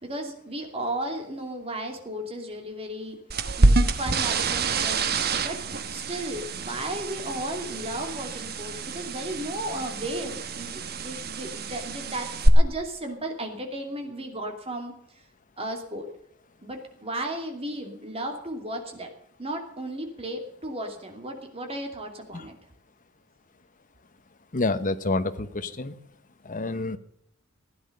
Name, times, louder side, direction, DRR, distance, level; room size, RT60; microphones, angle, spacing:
voice 1, 0.0-3.2 3.6-5.6 5.9-14.9 15.6-16.1 16.6-19.1 19.4-22.5, right 1 dB, 30° right, 3 dB, 2.8 m, -34 dB
sound 1, 3.3-12.5, right 3 dB, 50° right, 1.2 m, -27 dB
voice 2, 24.5-26.0 26.4-27.0, left 2 dB, 40° left, 11 dB, 1.0 m, -28 dB
16.0 x 10.5 x 6.6 m, 0.70 s
head